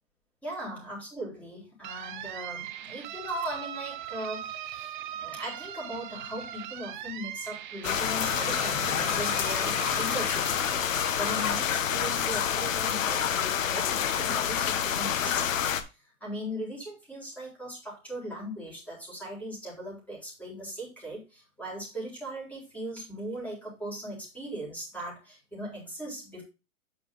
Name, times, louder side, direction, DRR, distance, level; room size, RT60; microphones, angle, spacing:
voice 1, 0.4-10.9 11.2-15.8 16.2-26.4, right 1 dB, 5° left, -3 dB, 3.9 m, -39 dB
sound 1, 1.8-11.4, right 11 dB, 35° right, 0.6 m, -39 dB
sound 2, 7.8-15.8, left 8 dB, 65° left, 1.4 m, -28 dB
9.0 x 5.0 x 3.7 m, 0.28 s
hypercardioid pair, 150°, 42 cm